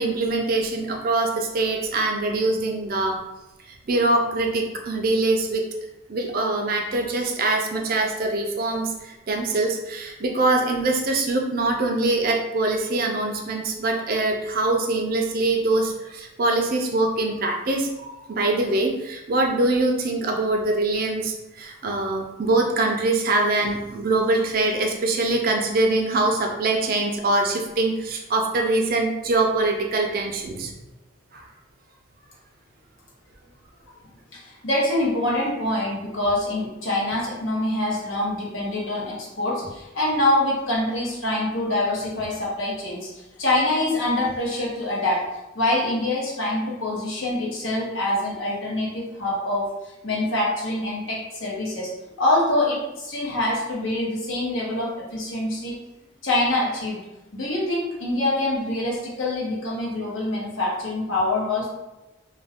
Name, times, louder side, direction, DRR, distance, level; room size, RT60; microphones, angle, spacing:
voice 1, 0.0-3.2 3.9-5.6 6.1-30.7 31.3-31.4, right 2 dB, 45° right, 2 dB, 0.4 m, -23 dB
voice 2, 34.3-45.2 45.5-51.9 52.2-55.8 56.2-57.0 57.3-61.7, left 1 dB, 70° left, -4 dB, 0.9 m, -25 dB
2.4 x 2.2 x 3.4 m, 1.0 s
head